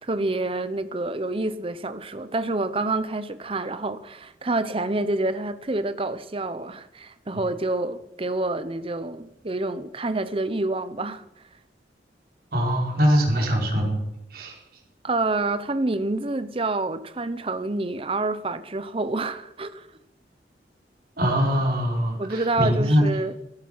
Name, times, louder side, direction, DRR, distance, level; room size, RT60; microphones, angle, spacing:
voice 1, 0.0-11.2 15.0-19.9 22.2-23.3, right 2 dB, 30° right, 0.8 m, -28 dB
voice 2, 12.5-14.0 14.3-14.6 21.2-23.0, equal, 55° right, 4.9 m, -22 dB
15.5 x 12.0 x 5.7 m
head